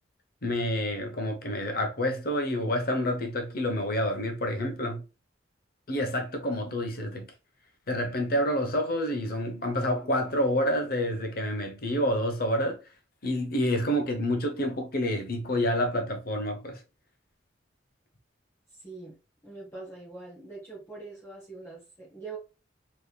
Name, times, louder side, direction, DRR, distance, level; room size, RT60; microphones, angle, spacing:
voice 1, 0.4-5.0 5.9-7.3 7.9-12.8 13.2-16.8, equal, 55° left, 0.8 m, -28 dB
voice 2, 18.8-19.2 19.4-22.4, right 3 dB, 15° left, 1.1 m, -43 dB
3.4 x 3.0 x 2.2 m
head